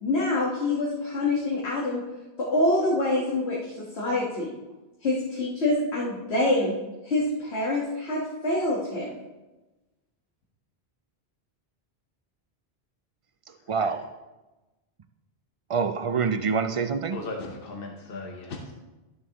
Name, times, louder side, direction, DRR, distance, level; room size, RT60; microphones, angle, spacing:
voice 1, 0.0-2.0 2.4-4.5 5.0-6.7 7.0-9.1, left 2 dB, 80° left, -6 dB, 1.8 m, -26 dB
voice 2, 13.5-14.0 15.7-17.2, right 5 dB, 45° right, 8 dB, 0.4 m, -26 dB
voice 3, 17.1-18.8, left 3 dB, 60° left, 1 dB, 1.1 m, -37 dB
12.0 x 7.5 x 3.0 m, 1.1 s
omnidirectional pair, 1.1 m